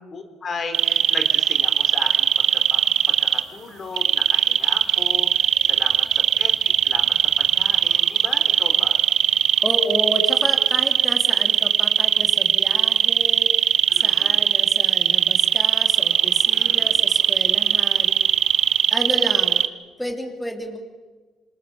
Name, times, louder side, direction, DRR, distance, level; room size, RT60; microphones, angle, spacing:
voice 1, 0.1-9.0 13.9-14.5 16.5-17.0, left 4 dB, 45° left, 6 dB, 3.5 m, -36 dB
sound 1, 0.7-3.4 4.0-19.7, right 11 dB, 80° right, 0.9 m, -19 dB
voice 2, 9.6-13.5 13.9-18.2 18.9-19.6 20.0-20.8, equal, 5° left, 3 dB, 3.0 m, -31 dB
27.0 x 19.0 x 7.1 m, 1.4 s
cardioid pair, 90°, 0 cm